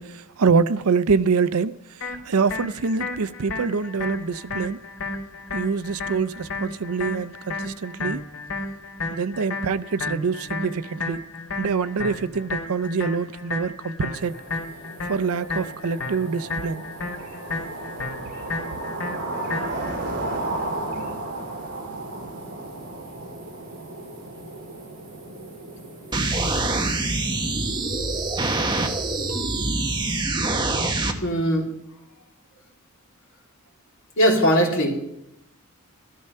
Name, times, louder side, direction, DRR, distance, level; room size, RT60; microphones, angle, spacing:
voice 1, 0.0-1.7 2.3-4.8 5.5-8.2 9.1-11.2 11.5-14.4 15.1-16.8, right 5 dB, 80° right, 0.5 m, -25 dB
sound 1, 2.0-20.0, left 3 dB, 80° left, 3.6 m, -33 dB
sound 2, 14.2-30.2, right 2 dB, 55° right, 4.3 m, -35 dB
sound 3, 26.1-31.1, right 2 dB, 20° right, 1.2 m, -25 dB
voice 2, 29.3-30.1 31.2-31.7 34.2-35.0, equal, 60° left, 3.4 m, -22 dB
13.5 x 13.0 x 5.6 m
head